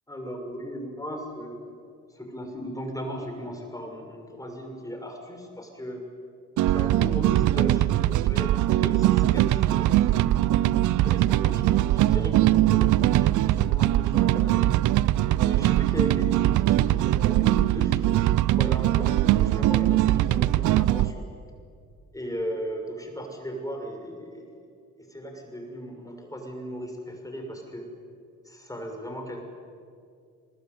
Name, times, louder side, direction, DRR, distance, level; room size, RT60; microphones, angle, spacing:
voice 1, 0.1-1.6 2.1-6.0 6.7-10.3 11.0-14.6 15.4-21.3 22.1-24.5 25.0-27.8 28.4-29.4, equal, 10° left, 3 dB, 6.3 m, -37 dB
sound 1, 6.6-21.1, right 14 dB, 75° right, 0.6 m, -21 dB
27.0 x 21.0 x 9.4 m, 2.3 s
cardioid pair, 90°, 30 cm